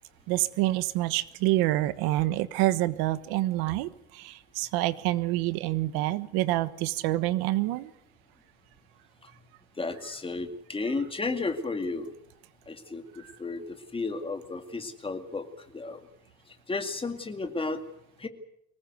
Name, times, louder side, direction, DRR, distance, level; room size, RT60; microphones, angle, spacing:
voice 1, 0.3-7.9 13.2-13.3, right 16 dB, 90° right, 15 dB, 1.4 m, -27 dB
voice 2, 9.8-12.1 12.7-13.0 13.4-13.6 13.9-15.4 15.7-16.0 16.7-17.8 18.2-18.3, left 3 dB, 15° left, 7 dB, 2.3 m, -32 dB
24.5 x 19.0 x 8.2 m, 0.72 s
cardioid pair, 150°, 36 cm